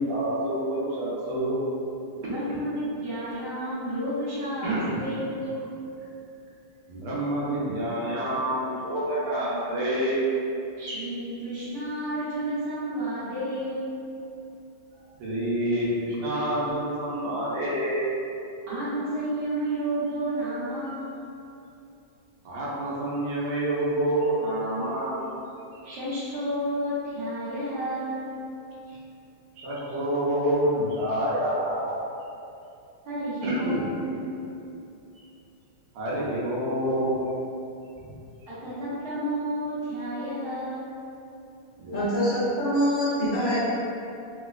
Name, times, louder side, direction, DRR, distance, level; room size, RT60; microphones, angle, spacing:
voice 1, 0.0-1.6 4.6-5.0 6.9-10.3 15.2-18.1 22.4-25.3 28.9-29.0 29.6-32.0 33.4-33.8 35.2-35.3 35.9-37.4 38.0-38.2 41.8-42.0, right 1 dB, 80° right, -7 dB, 1.6 m, -27 dB
voice 2, 2.2-5.6 10.8-13.9 18.7-21.2 25.8-28.4 33.0-34.3 38.5-40.9, right 1 dB, 60° right, -12 dB, 1.4 m, -31 dB
voice 3, 41.9-43.6, equal, 65° left, -11 dB, 1.3 m, -24 dB
4.0 x 2.0 x 2.3 m, 2.7 s
omnidirectional pair, 2.4 m